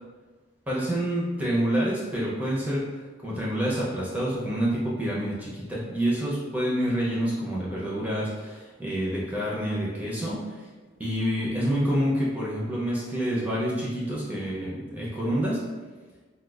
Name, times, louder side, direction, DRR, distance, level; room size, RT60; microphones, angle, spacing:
voice 1, 0.7-3.0 3.2-10.6 11.0-15.6, equal, 10° right, -6 dB, 0.5 m, -27 dB
4.2 x 2.2 x 2.3 m, 1.3 s
head